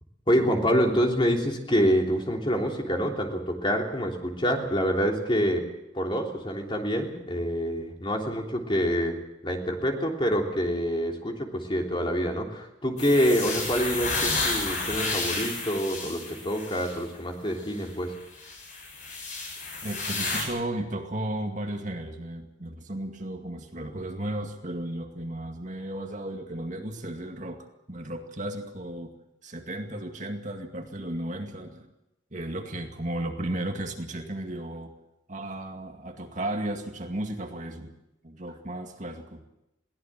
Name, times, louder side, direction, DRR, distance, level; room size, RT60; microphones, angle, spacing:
voice 1, 0.3-5.7 5.9-9.2 9.4-18.1, equal, 25° left, 2 dB, 3.3 m, -26 dB
sound 1, 13.0-17.0 17.6-17.7 18.4-20.4, left 3 dB, 40° left, 7.7 m, -31 dB
voice 2, 19.8-29.1 29.4-31.9 32.3-34.9 35.3-37.9 38.2-39.4, right 1 dB, 40° right, 4 dB, 2.2 m, -34 dB
22.0 x 17.5 x 7.6 m, 0.89 s
head